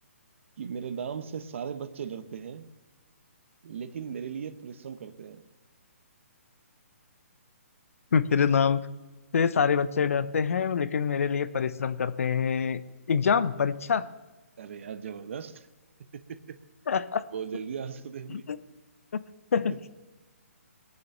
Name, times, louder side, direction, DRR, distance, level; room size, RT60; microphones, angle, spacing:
voice 1, 0.6-2.7 3.6-5.4 13.3-13.4 14.6-15.7 16.1-16.6 17.3-18.5, right 7 dB, 55° right, 12 dB, 1.0 m, -37 dB
voice 2, 8.1-8.9 9.3-12.8 13.1-14.1 16.9-17.2 18.3-18.6 19.5-19.8, left 6 dB, 65° left, 15 dB, 0.8 m, -25 dB
20.5 x 6.9 x 6.7 m, 1.2 s
hypercardioid pair, 145°, 8 cm